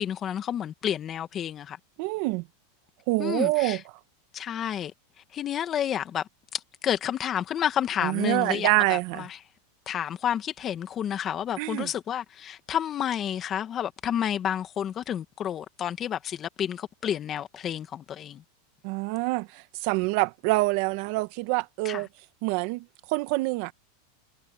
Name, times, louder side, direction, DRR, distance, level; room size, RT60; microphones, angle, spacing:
voice 1, 0.0-1.8 3.2-3.8 4.3-4.9 5.3-9.4 9.9-18.4 21.8-22.0, left 9 dB, 30° left, 1.8 m, -30 dB
voice 2, 2.0-2.5 3.1-3.8 8.0-9.3 11.6-11.9 18.8-22.1 22.4-23.7, right 23 dB, 55° right, 1.3 m, -26 dB
supercardioid pair, 135°, 0 cm